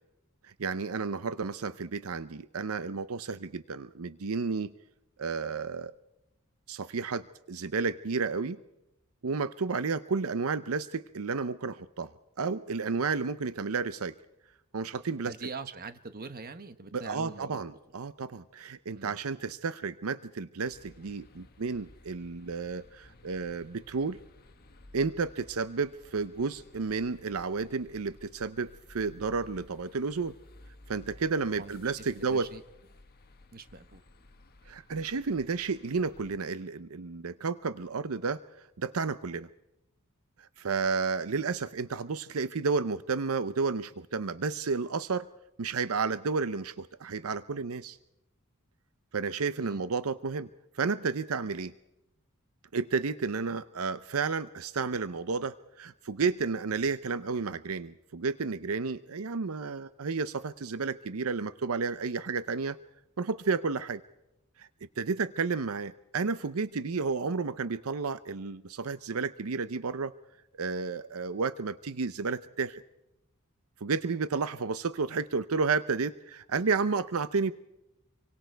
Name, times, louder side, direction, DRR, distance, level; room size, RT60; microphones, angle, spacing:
voice 1, 0.4-4.7 5.2-5.9 6.7-8.6 9.2-12.1 12.4-14.1 14.7-15.3 16.9-24.2 24.9-30.4 30.9-32.5 34.7-38.4 38.8-39.5 40.4-45.3 45.6-48.0 49.1-50.5 50.7-51.7 52.7-62.8 63.2-64.0 64.6-64.7 65.0-70.1 70.6-72.8 73.8-77.5, right 4 dB, 80° right, 14 dB, 0.7 m, -32 dB
voice 2, 15.2-17.6 18.9-19.1 31.5-31.8 32.2-32.6 33.5-34.0 49.6-49.8, right 4 dB, 45° right, 10 dB, 1.2 m, -43 dB
sound 1, 20.6-36.4, left 1 dB, 45° left, 1.5 m, -55 dB
27.5 x 24.0 x 4.6 m, 0.90 s
head